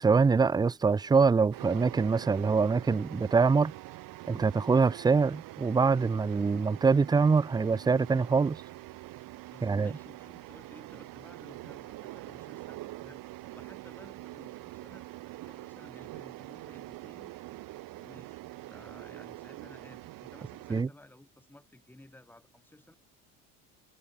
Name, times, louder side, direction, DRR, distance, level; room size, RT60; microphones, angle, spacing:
voice 1, 0.0-3.7 4.3-8.6 9.6-9.9 20.7-20.9, right 4 dB, 10° right, 0.5 m, -24 dB
sound 1, 1.5-20.8, right 18 dB, 65° right, 1.7 m, -45 dB
voice 2, 9.5-17.3 17.9-18.4 18.6-23.0, left 1 dB, 5° left, 4.3 m, -55 dB
cardioid pair, 120°, 36 cm